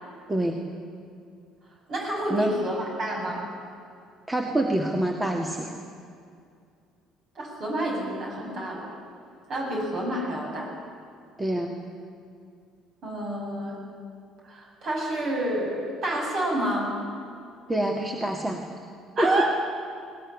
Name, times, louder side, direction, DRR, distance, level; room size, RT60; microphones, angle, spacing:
voice 1, 1.9-3.5 7.3-8.9 9.5-10.7 13.0-13.8 14.4-17.0 19.2-19.4, right 1 dB, 45° right, -1 dB, 7.8 m, -29 dB
voice 2, 4.3-5.7 11.4-11.8 17.7-18.6 19.2-19.4, right 1 dB, 15° right, 3 dB, 2.0 m, -26 dB
20.5 x 19.5 x 10.0 m, 2.4 s
figure-of-eight pair, 55°, 0 cm